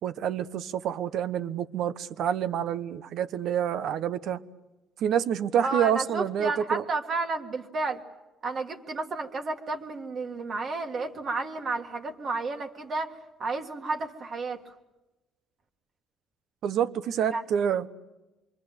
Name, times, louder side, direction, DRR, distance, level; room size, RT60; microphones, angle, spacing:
voice 1, 0.0-4.4 5.0-6.8 16.6-17.9, right 9 dB, 65° right, 1.1 m, -28 dB
voice 2, 5.6-8.0 8.4-14.6 17.3-17.4, right 3 dB, 40° right, 1.8 m, -32 dB
26.5 x 23.5 x 8.0 m
cardioid pair, 150°, 0 cm